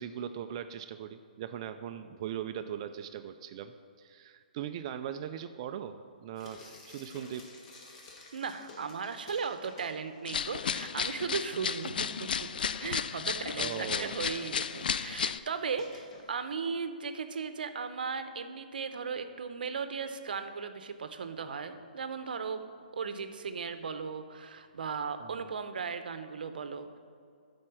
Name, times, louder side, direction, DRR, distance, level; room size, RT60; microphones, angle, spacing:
voice 1, 0.0-7.4 13.2-14.2 25.2-25.5, right 9 dB, 35° right, 9 dB, 0.3 m, -40 dB
Frying (food), 6.4-10.4 10.7-16.7, left 2 dB, 40° left, 1.5 m, -54 dB
voice 2, 8.3-12.5 12.8-22.6 22.9-27.0, right 5 dB, 75° right, 9 dB, 0.7 m, -37 dB
sound 1, 10.2-15.4, left 7 dB, 70° left, 0.3 m, -33 dB
9.5 x 4.3 x 6.2 m, 2.3 s
hypercardioid pair, 150°, 5 cm